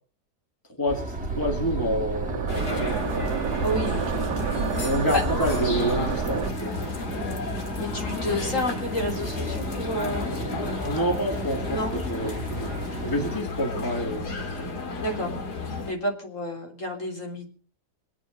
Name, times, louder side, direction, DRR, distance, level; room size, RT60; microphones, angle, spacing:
voice 1, 0.8-3.0 4.8-6.8 10.8-12.7 13.0-14.7, equal, 10° left, 2 dB, 2.4 m, -28 dB
sound 1, 0.9-13.4, right 2 dB, 5° right, 1.9 m, -35 dB
sound 2, 1.2-6.5, right 6 dB, 80° right, 1.5 m, -29 dB
sound 3, 2.5-15.9, left 4 dB, 75° left, 2.5 m, -33 dB
voice 2, 3.6-4.2 5.1-5.2 7.1-7.4 7.8-10.3 11.7-11.9 13.7-13.8 15.0-15.3 15.8-17.5, left 1 dB, 50° left, 1 dB, 4.0 m, -30 dB
25.5 x 8.8 x 5.3 m, 0.40 s
omnidirectional pair, 1.7 m